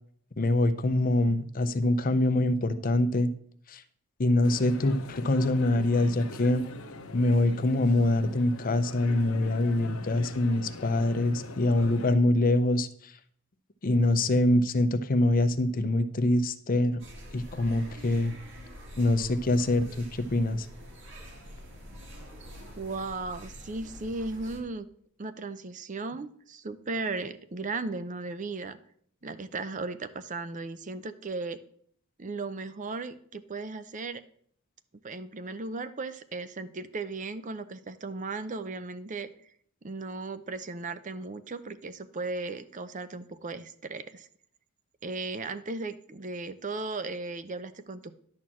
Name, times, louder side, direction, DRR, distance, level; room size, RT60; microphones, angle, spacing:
voice 1, 0.4-3.3 3.7-3.8 4.2-6.6 7.1-13.1 13.8-17.0 17.3-18.3 19.0-20.7, left 1 dB, 40° left, 12 dB, 0.6 m, -24 dB
sound 1, 4.4-12.2, left 2 dB, 80° left, 0.9 m, -42 dB
sound 2, 17.0-24.6, equal, 60° right, 2.3 m, -46 dB
voice 2, 22.8-24.9 25.2-28.8 29.2-31.6 32.2-34.2 35.0-39.3 39.8-44.3 45.0-48.1, right 3 dB, 35° right, 12 dB, 0.6 m, -36 dB
11.0 x 4.4 x 7.4 m, 0.62 s
head